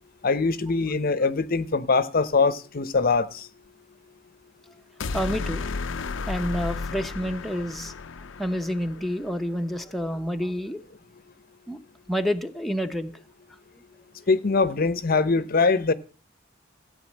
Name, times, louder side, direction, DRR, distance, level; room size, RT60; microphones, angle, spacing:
voice 1, 0.2-3.3 14.3-15.9, left 4 dB, 50° left, 0.8 m, -22 dB
sound 1, 5.0-9.3, left 4 dB, 80° left, 0.6 m, -33 dB
voice 2, 5.1-5.7 6.3-7.9 8.4-10.8 11.7-11.8 12.1-13.1, equal, ahead, 0.8 m, -28 dB
15.0 x 8.8 x 7.4 m
head